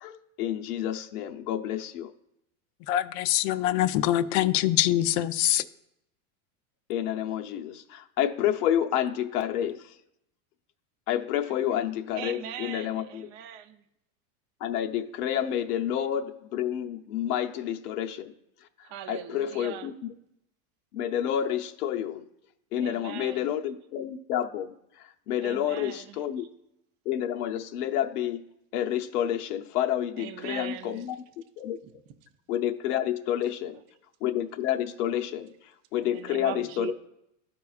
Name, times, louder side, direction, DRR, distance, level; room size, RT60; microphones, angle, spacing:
voice 1, 0.0-2.1 6.9-9.9 11.1-13.3 14.6-18.3 19.1-19.9 20.9-22.3 22.7-26.4 27.1-28.4 28.7-31.2 31.6-31.8 32.5-33.8 34.2-35.5 35.9-36.9, left 10 dB, 85° left, 4 dB, 0.8 m, -29 dB
voice 2, 2.9-5.6, left 13 dB, 50° left, 10 dB, 0.5 m, -24 dB
voice 3, 12.1-13.8 18.8-19.9 22.8-23.5 25.4-26.5 30.2-31.0 36.0-36.9, right 11 dB, 40° right, 9 dB, 0.6 m, -40 dB
13.5 x 4.6 x 2.4 m, 0.81 s
supercardioid pair, 140°, 44 cm